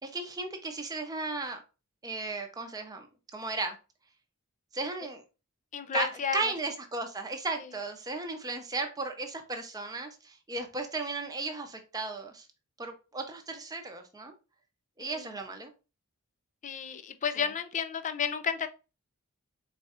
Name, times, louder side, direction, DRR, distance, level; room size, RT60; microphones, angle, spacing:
voice 1, 0.0-1.6 2.0-3.1 3.3-3.8 4.7-5.2 5.9-12.5 12.8-14.3 15.0-15.7 17.4-17.5, right 3 dB, 15° right, 0.6 m, -35 dB
voice 2, 5.7-6.5 15.0-15.2 16.6-18.7, left 7 dB, 35° left, 0.4 m, -32 dB
4.1 x 2.3 x 4.2 m
head